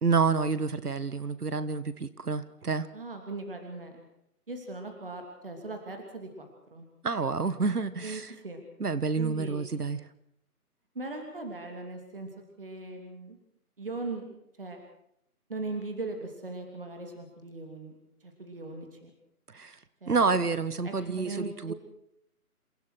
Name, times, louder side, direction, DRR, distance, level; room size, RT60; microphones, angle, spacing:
voice 1, 0.0-2.9 7.0-8.3 8.8-10.0 19.5-19.8 20.1-21.7, right 4 dB, 75° right, 15 dB, 1.6 m, -28 dB
voice 2, 2.9-4.0 4.5-6.9 8.0-8.6 9.2-9.9 10.9-12.3 12.6-13.4 13.8-14.2 14.6-14.8 15.5-17.9 18.2-19.1 20.0-20.5 20.8-21.7, right 3 dB, 35° right, 4 dB, 3.1 m, -39 dB
28.0 x 16.5 x 6.4 m, 0.74 s
figure-of-eight pair, 180°, 46 cm